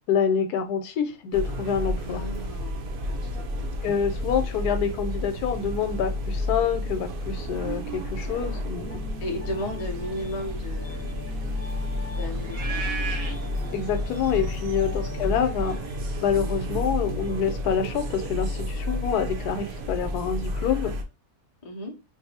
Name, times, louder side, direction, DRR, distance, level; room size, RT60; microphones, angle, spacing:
voice 1, 0.1-2.2 3.8-9.1 13.7-15.8 16.2-21.0, left 7 dB, 90° left, 8 dB, 1.2 m, -27 dB
sound 1, 1.3-21.0, left 1 dB, 80° right, 0.4 m, -31 dB
voice 2, 2.0-2.8 3.0-3.7 8.2-8.6 8.9-11.4 12.1-13.3 14.8-15.1 21.6-21.9, left 1 dB, 45° left, 4 dB, 0.5 m, -36 dB
Piano, 8.8-18.5, left 5 dB, 10° right, 1.4 m, -44 dB
sound 2, 9.9-16.8, right 5 dB, 60° right, 1.0 m, -40 dB
2.6 x 2.6 x 4.1 m, 0.28 s
omnidirectional pair, 1.6 m